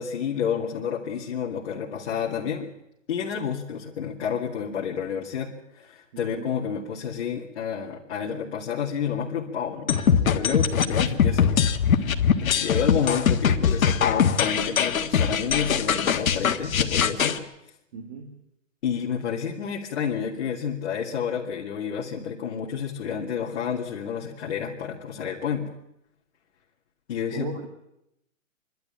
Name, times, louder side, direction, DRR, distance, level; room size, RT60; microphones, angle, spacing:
voice 1, 0.0-2.7 3.1-5.5 5.8-9.9 10.3-12.1 12.4-17.4 18.8-25.7 27.1-27.5, left 7 dB, 50° left, -4 dB, 2.4 m, -30 dB
voice 2, 6.1-6.5 17.9-18.4 27.3-27.7, right 6 dB, 35° right, 6 dB, 1.7 m, -37 dB
sound 1, 9.9-17.4, left 7 dB, 85° left, 1.7 m, -22 dB
27.5 x 12.0 x 8.7 m, 0.83 s
hypercardioid pair, 170°, 40 cm